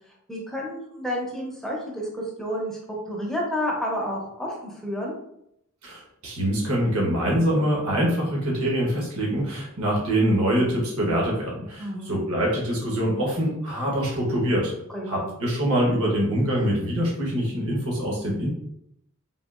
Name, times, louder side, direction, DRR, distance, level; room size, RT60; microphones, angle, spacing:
voice 1, 0.3-5.1 11.8-12.2 14.9-15.3, equal, ahead, -2 dB, 0.5 m, -30 dB
voice 2, 5.8-14.8 15.1-18.5, equal, 80° right, -3 dB, 0.9 m, -24 dB
3.5 x 2.3 x 2.4 m, 0.77 s
head